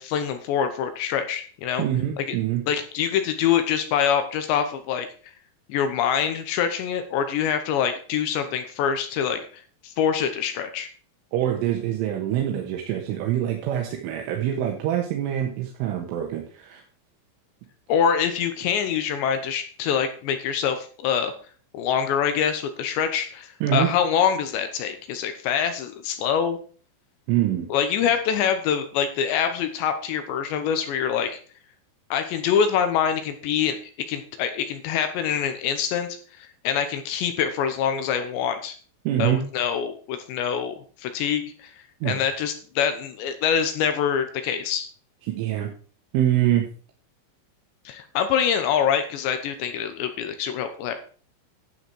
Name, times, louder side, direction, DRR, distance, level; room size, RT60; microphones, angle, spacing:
voice 1, 0.0-1.8 2.2-2.4 2.7-5.1 5.7-10.9 17.9-21.3 21.7-26.6 27.7-31.4 32.1-33.8 34.1-36.1 36.6-38.8 39.2-41.7 42.0-44.9 47.9-50.9, left 8 dB, 75° left, 8 dB, 3.0 m, -25 dB
voice 2, 1.8-2.6 11.3-16.8 23.6-23.9 27.3-27.7 39.1-39.4 42.0-42.2 45.3-45.7 46.1-46.7, right 11 dB, 85° right, 1 dB, 3.9 m, -25 dB
12.0 x 7.9 x 4.5 m, 0.41 s
omnidirectional pair, 5.7 m